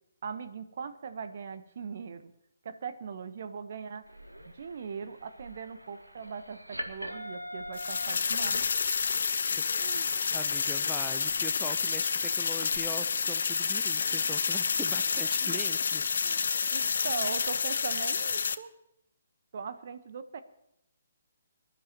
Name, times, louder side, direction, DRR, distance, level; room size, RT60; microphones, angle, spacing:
voice 1, 0.2-2.3 2.6-4.1 4.5-8.9 9.8-10.1 15.4-15.6 16.2-16.5 16.7-18.7 19.5-20.4, right 6 dB, 45° right, 10 dB, 1.0 m, -40 dB
sound 1, 4.0-12.7, equal, 85° right, 1.9 m, -45 dB
sound 2, 7.7-18.5, left 5 dB, 55° left, 0.7 m, -29 dB
voice 2, 10.3-16.3, right 1 dB, 5° right, 7 dB, 0.8 m, -42 dB
24.0 x 12.0 x 3.0 m, 0.80 s
figure-of-eight pair, 135°, 0 cm